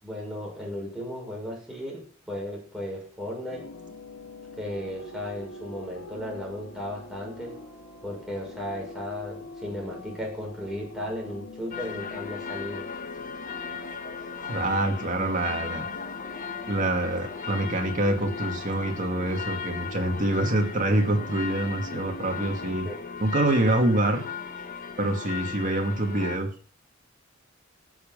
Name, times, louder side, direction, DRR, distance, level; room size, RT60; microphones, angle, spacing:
voice 1, 0.0-3.6 4.6-7.6 8.0-12.9 22.8-23.2, left 1 dB, 5° right, -3 dB, 6.2 m, -35 dB
sound 1, 3.5-22.8, left 1 dB, 85° left, 3.7 m, -44 dB
sound 2, 11.7-26.4, left 6 dB, 40° left, 1.2 m, -37 dB
voice 2, 14.5-15.9 16.7-22.9 23.2-24.2 25.0-26.5, right 1 dB, 40° right, 3 dB, 2.3 m, -26 dB
16.0 x 7.5 x 5.5 m, 0.41 s
head